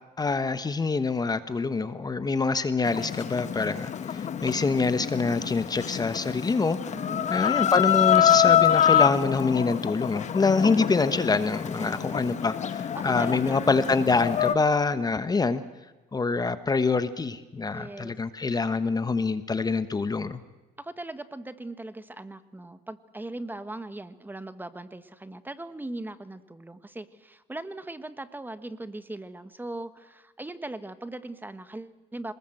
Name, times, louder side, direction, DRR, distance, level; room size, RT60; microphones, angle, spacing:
voice 1, 0.2-6.8 7.3-15.6 16.1-20.4, left 4 dB, 25° left, 12 dB, 1.2 m, -25 dB
Chicken rooster, 2.8-14.6, left 10 dB, 45° left, 1.1 m, -26 dB
voice 2, 6.9-7.3 11.7-12.3 12.9-13.7 17.7-18.1 20.8-32.3, right 2 dB, 10° right, 12 dB, 1.4 m, -39 dB
27.0 x 20.5 x 7.8 m, 1.1 s
cardioid pair, 110°, 17 cm